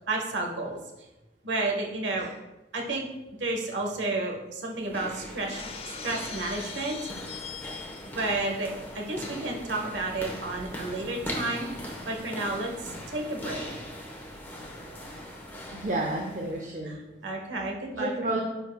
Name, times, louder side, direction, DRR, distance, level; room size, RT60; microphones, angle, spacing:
voice 1, 0.1-0.8 1.4-2.3 2.7-3.1 3.4-5.6 6.0-7.0 8.2-13.7 16.8-18.3, right 2 dB, 85° right, 1 dB, 1.2 m, -31 dB
sound 1, 4.7-16.7, equal, 10° left, 1.0 m, -40 dB
Shatter, 5.5-8.3, left 6 dB, 30° left, 0.4 m, -41 dB
voice 2, 15.7-17.0 17.9-18.4, right 2 dB, 45° right, 0 dB, 0.6 m, -31 dB
10.0 x 4.5 x 2.3 m, 1.0 s
head